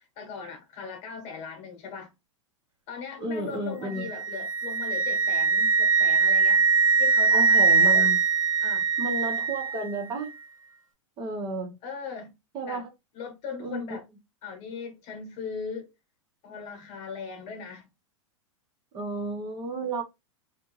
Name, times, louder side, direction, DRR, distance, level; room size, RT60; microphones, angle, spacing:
voice 1, 0.2-2.1 2.9-8.2 8.6-8.9 11.8-12.3 12.6-12.8 13.1-14.1 14.4-15.9 16.4-17.9, left 5 dB, 40° left, 1.1 m, -39 dB
voice 2, 3.2-4.1 7.3-8.2 9.0-10.3 11.2-11.8 12.5-12.9 13.6-13.8 18.9-20.0, right 2 dB, 30° right, 0.9 m, -32 dB
Wind instrument woodwind instrument, 3.9-9.9, right 5 dB, 90° right, 0.6 m, -22 dB
2.6 x 2.2 x 3.1 m
hypercardioid pair, 100°, 16 cm